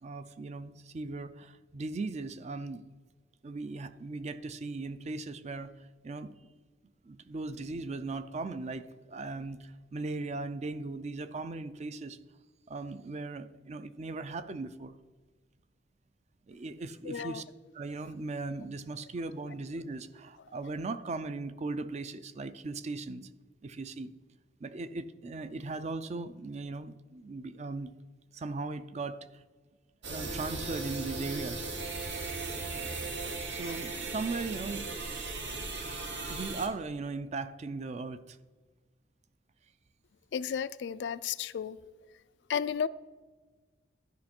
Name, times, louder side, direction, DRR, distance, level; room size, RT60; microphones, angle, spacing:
voice 1, 0.0-2.8 3.4-6.4 7.0-12.2 12.7-15.0 16.5-17.4 17.7-23.3 23.6-24.1 24.6-27.9 28.3-29.4 30.0-31.7 33.5-34.9 36.3-38.4, right 3 dB, 40° right, 0.4 m, -38 dB
voice 2, 17.1-17.4 40.3-41.8 42.5-42.9, left 7 dB, 75° left, 0.3 m, -33 dB
sound 1, 30.0-36.7, right 3 dB, 90° right, 1.3 m, -37 dB
12.0 x 5.2 x 4.3 m
head